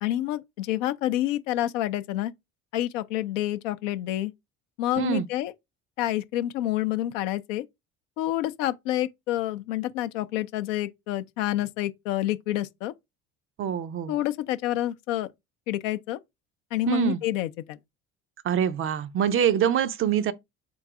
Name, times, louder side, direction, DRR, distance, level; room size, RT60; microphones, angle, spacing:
voice 1, 0.0-2.3 2.7-4.3 4.8-5.5 6.0-7.6 8.2-12.9 14.1-15.3 15.7-16.2 16.7-17.8, left 14 dB, 65° left, 0.6 m, -28 dB
voice 2, 5.0-5.3 13.6-14.1 16.9-17.2 18.4-20.3, right 9 dB, 30° right, 0.4 m, -25 dB
3.9 x 2.6 x 4.6 m
figure-of-eight pair, 60°, 41 cm